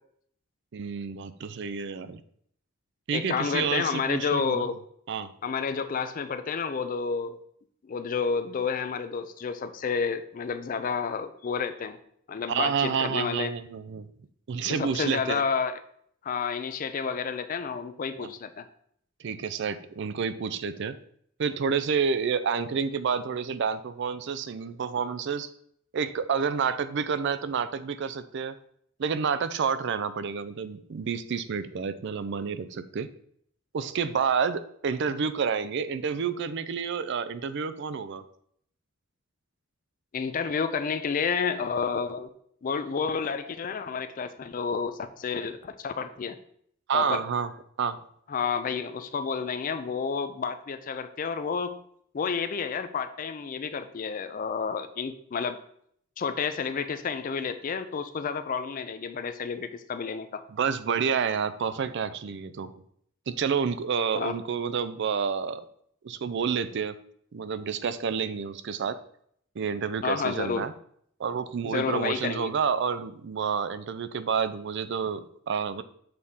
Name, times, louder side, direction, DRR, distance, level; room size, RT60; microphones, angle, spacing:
voice 1, 0.7-2.2 3.1-4.7 5.1-5.3 12.5-14.1 14.5-15.4 18.2-18.3 19.2-21.0 21.4-25.5 25.9-28.6 29.0-33.1 33.7-38.2 46.9-47.5 47.8-48.0 60.5-62.7 63.3-65.6 66.0-66.9 67.3-69.0 69.6-70.7 71.2-75.8, right 6 dB, 60° right, 13 dB, 0.4 m, -29 dB
voice 2, 3.1-4.8 5.4-7.4 7.9-12.0 12.3-13.5 14.6-15.8 16.2-18.7 40.1-42.3 42.6-46.4 46.9-47.2 48.3-51.8 52.1-55.6 56.2-60.4 64.1-64.4 70.0-70.7 71.6-72.5, left 5 dB, 40° left, 11 dB, 0.4 m, -30 dB
6.6 x 4.1 x 3.6 m, 0.67 s
head